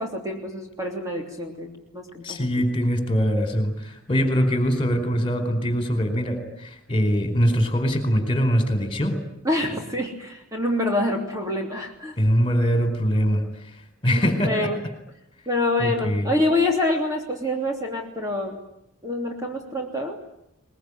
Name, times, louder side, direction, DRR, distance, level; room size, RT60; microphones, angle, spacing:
voice 1, 0.0-2.5 9.4-12.2 14.1-14.8 15.5-18.6 19.0-20.2, left 1 dB, 15° right, 1 dB, 3.1 m, -26 dB
voice 2, 2.2-9.2 12.2-14.7 15.8-16.3, equal, 25° left, 7 dB, 4.5 m, -23 dB
23.0 x 21.5 x 9.9 m, 0.79 s
head